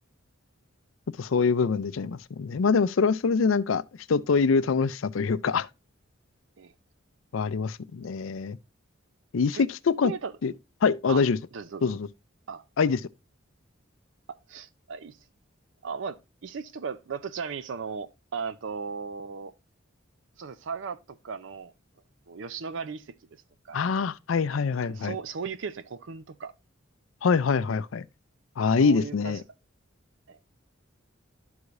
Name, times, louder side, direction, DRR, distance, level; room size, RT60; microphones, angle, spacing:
voice 1, 1.2-3.8 4.1-5.7 7.3-8.6 9.3-10.1 10.4-10.5 10.8-11.4 11.8-12.1 12.8-13.0 23.7-25.1 27.2-28.1 28.6-29.4, left 5 dB, 80° left, 0.5 m, -24 dB
voice 2, 11.5-12.0 12.5-12.6 14.3-15.2 15.8-19.5 20.4-21.7 22.3-23.2 23.6-23.9 24.9-26.5 28.8-29.4 30.3-30.4, right 5 dB, 65° right, 0.5 m, -36 dB
12.0 x 4.8 x 2.5 m
head